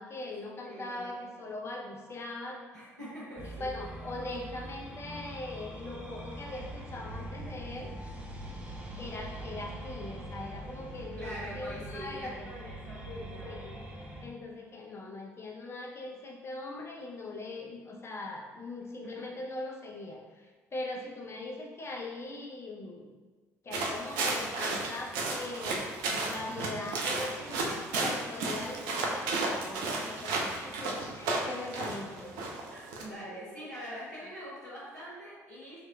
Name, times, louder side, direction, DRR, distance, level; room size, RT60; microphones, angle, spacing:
voice 1, 0.0-2.6 3.4-7.9 9.0-12.5 13.4-13.8 14.2-23.1 23.6-25.9 26.2-32.4, left 2 dB, 30° left, 0 dB, 0.6 m, -41 dB
voice 2, 0.6-1.2 2.7-3.7 11.1-13.6 19.2-19.4 32.7-35.8, equal, 90° right, -12 dB, 1.4 m, -44 dB
sound 1, 3.4-14.2, right 1 dB, 15° right, 0.7 m, -43 dB
sound 2, 23.7-33.0, right 3 dB, 65° right, 0.5 m, -33 dB
4.3 x 3.0 x 2.3 m, 1.3 s
figure-of-eight pair, 50°, 8 cm